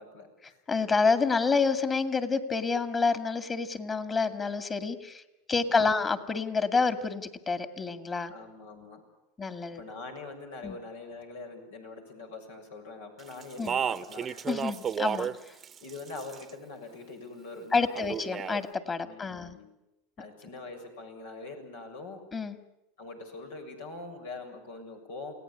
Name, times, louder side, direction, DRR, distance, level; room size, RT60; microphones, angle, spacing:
voice 1, 0.0-0.6 5.5-6.0 8.3-9.0 9.7-14.5 15.8-18.2 19.0-19.7 20.2-22.2 23.0-25.3, left 3 dB, 85° left, 3 dB, 6.9 m, -43 dB
voice 2, 0.7-5.2 5.5-8.3 9.4-9.8 10.6-10.8 13.6-13.8 14.5-15.5 17.7-19.6 22.3-22.6, left 4 dB, 25° left, 9 dB, 2.3 m, -28 dB
Speech, 13.4-15.4 15.6-16.5 17.9-18.6, right 8 dB, 30° right, 0.9 m, -32 dB
29.0 x 17.5 x 10.0 m, 0.93 s
supercardioid pair, 110°, 0 cm